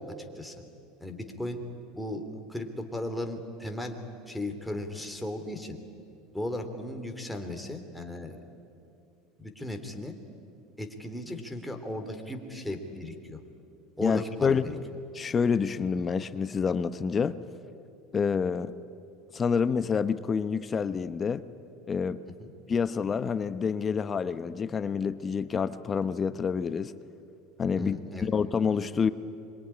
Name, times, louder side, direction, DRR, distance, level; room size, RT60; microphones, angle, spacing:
voice 1, 1.0-1.6 1.9-4.0 4.3-5.8 6.3-8.4 9.4-10.1 10.8-13.4 14.0-14.8 22.4-22.5 27.8-28.3, left 1 dB, 5° left, 4 dB, 3.1 m, -36 dB
voice 2, 14.0-14.6 15.1-17.4 18.1-18.7 19.3-21.4 21.9-22.2 22.7-26.9 27.6-28.0 28.2-29.1, left 6 dB, 30° left, 13 dB, 0.9 m, -27 dB
26.0 x 22.5 x 10.0 m, 2.6 s
supercardioid pair, 110°, 0 cm